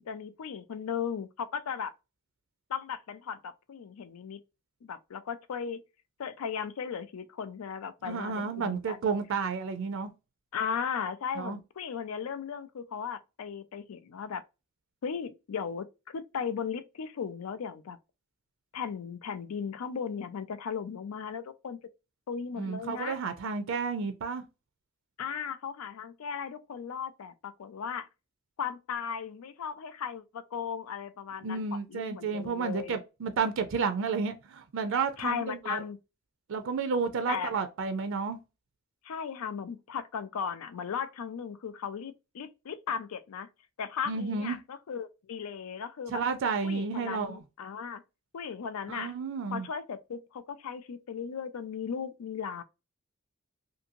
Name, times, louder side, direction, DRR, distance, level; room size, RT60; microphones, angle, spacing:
voice 1, 0.0-1.9 2.7-4.4 4.8-5.8 6.2-9.0 10.5-14.4 15.0-18.0 18.7-21.8 22.3-23.2 25.2-28.1 28.6-31.6 31.9-33.0 35.2-36.0 37.3-37.5 39.0-43.5 43.8-46.2 46.6-48.0 48.3-49.1 49.5-52.6, left 7 dB, 80° left, 0.4 m, -36 dB
voice 2, 8.0-10.1 11.4-11.6 22.6-24.4 31.4-35.8 36.5-38.4 44.1-44.6 46.1-47.4 48.9-49.7, right 5 dB, 60° right, 0.4 m, -31 dB
2.6 x 2.6 x 2.6 m
head